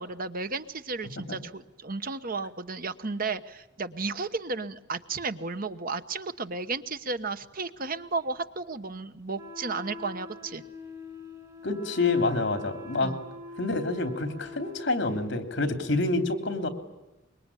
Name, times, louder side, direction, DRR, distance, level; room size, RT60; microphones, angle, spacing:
voice 1, 0.0-10.6 13.0-13.2, right 3 dB, 50° right, 11 dB, 1.1 m, -33 dB
Wind instrument woodwind instrument, 9.3-15.3, left 2 dB, 15° right, 3.5 m, -44 dB
voice 2, 11.6-13.1 13.6-16.7, left 3 dB, 65° left, 7 dB, 3.2 m, -27 dB
25.0 x 22.5 x 9.9 m, 1.0 s
head